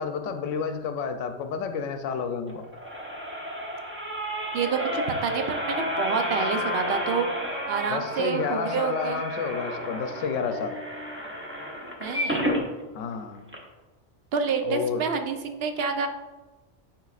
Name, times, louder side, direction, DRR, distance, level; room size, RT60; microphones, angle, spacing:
voice 1, 0.0-2.6 7.9-10.8 12.9-13.4 14.6-15.0, left 6 dB, 90° left, 7 dB, 0.9 m, -30 dB
door creak, 2.5-12.6 13.1-13.2 13.5-13.6, equal, 10° right, 0.9 m, -31 dB
voice 2, 4.5-7.3 7.7-9.2 12.0-12.4 14.3-16.1, right 6 dB, 60° right, 6 dB, 0.8 m, -28 dB
12.0 x 4.1 x 2.4 m, 1.2 s
omnidirectional pair, 1.2 m